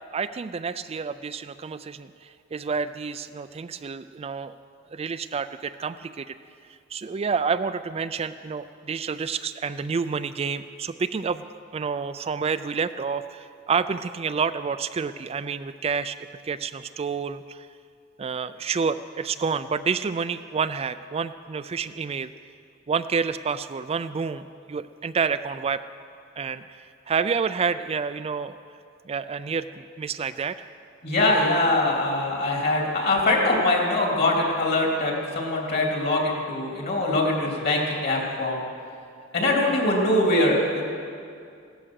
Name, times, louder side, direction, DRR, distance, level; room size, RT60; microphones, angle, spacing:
voice 1, 0.1-4.5 4.9-6.3 6.9-11.4 11.7-17.7 18.2-22.3 22.9-25.8 26.4-28.6 29.1-30.6, right 5 dB, 30° right, 11 dB, 0.3 m, -29 dB
voice 2, 31.0-38.6 39.3-40.8, left 2 dB, 50° left, -1 dB, 3.3 m, -23 dB
16.5 x 13.5 x 6.4 m, 2.3 s
head